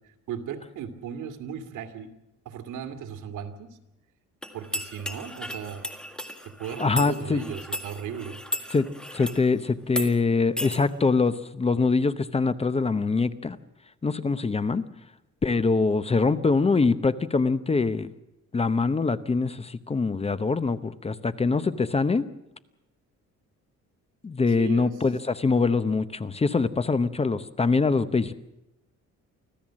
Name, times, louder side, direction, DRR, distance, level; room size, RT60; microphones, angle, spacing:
voice 1, 0.3-2.1 2.5-3.8 4.5-5.9 6.4-8.4 24.6-24.9, right 8 dB, 85° right, 7 dB, 2.3 m, -36 dB
sound 1, 4.4-9.4 9.9-10.1 10.6-10.8, equal, 5° left, 1.8 m, -35 dB
voice 2, 6.8-7.4 8.7-8.9 9.1-13.6 14.0-14.8 15.4-18.1 18.5-22.2 24.2-28.3, left 4 dB, 20° left, 13 dB, 0.8 m, -24 dB
25.0 x 15.5 x 7.5 m, 0.91 s
cardioid pair, 135°, 30 cm